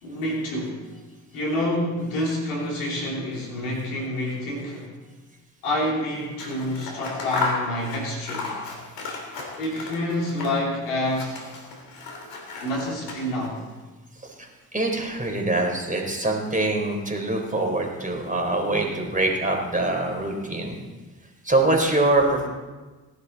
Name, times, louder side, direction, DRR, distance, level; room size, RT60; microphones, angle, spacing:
voice 1, 0.0-0.8 1.3-4.9 5.6-8.5 9.6-11.4 12.6-13.6, left 1 dB, 80° left, -2 dB, 3.3 m, -28 dB
Scissors, 6.2-10.8 11.0-13.6, left 3 dB, 65° left, 3.1 m, -34 dB
voice 2, 14.7-20.8 21.5-22.5, right 2 dB, 15° right, 1 dB, 4.3 m, -24 dB
18.5 x 11.0 x 4.2 m, 1.3 s
hypercardioid pair, 45°, 46 cm